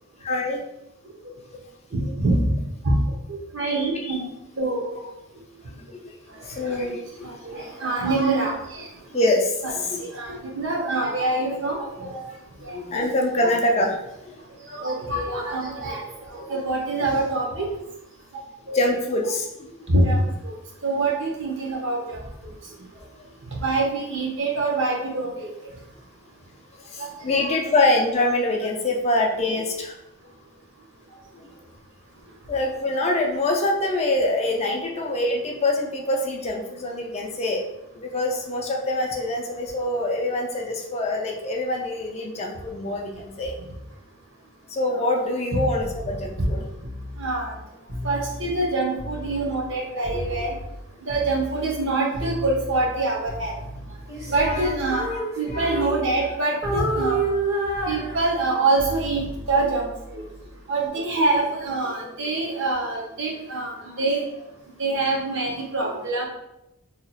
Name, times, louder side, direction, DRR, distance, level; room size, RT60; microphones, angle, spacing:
voice 1, 0.2-0.6 4.0-4.2 5.9-6.1 6.4-7.0 9.1-10.0 12.3-12.4 12.7-14.0 14.2-14.4 16.5-16.6 18.7-19.9 23.0-23.3 26.9-30.0 31.3-31.5 32.5-37.6 37.9-43.5 44.7-46.7 50.3-50.5 53.6-53.9 54.2-55.9, left 2 dB, 30° left, 1 dB, 0.4 m, -25 dB
voice 2, 1.9-2.4 2.8-2.9 3.5-4.2 4.6-4.9 7.2-8.9 10.0-12.2 12.6-12.8 14.7-16.0 16.3-17.7 18.7-18.8 19.9-20.5 20.8-22.2 23.6-25.5 27.0-27.4 45.3-45.4 46.4-46.5 47.2-47.5 48.0-50.5 51.1-53.5 54.3-55.0 55.4-57.2 57.9-59.2 59.5-59.9 60.1-60.2 60.7-63.7 64.0-64.2 64.8-66.2, right 2 dB, 55° right, -1 dB, 0.8 m, -25 dB
sound 1, 45.8-49.7 50.0-54.1 54.4-55.2 55.5-56.4 56.6-60.6 61.8-62.1, left 1 dB, 80° right, 1.1 m, -37 dB
Female singing, 54.1-56.3 56.6-58.7, right 2 dB, 15° right, 0.6 m, -28 dB
2.8 x 2.3 x 4.1 m, 0.90 s
head